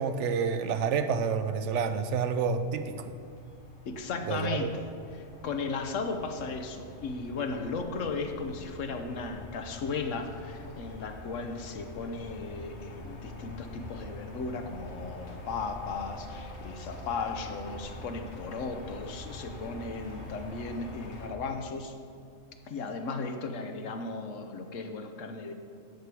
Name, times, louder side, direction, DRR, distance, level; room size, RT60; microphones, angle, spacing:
voice 1, 0.0-3.1 4.3-4.7, right 6 dB, 75° right, 10 dB, 1.0 m, -29 dB
sound 1, 2.4-21.3, left 1 dB, 65° left, 1.7 m, -45 dB
voice 2, 3.9-4.9 5.2-21.9 22.6-25.5, left 4 dB, 80° left, 5 dB, 1.2 m, -36 dB
13.5 x 8.4 x 4.7 m, 2.3 s
omnidirectional pair, 1.3 m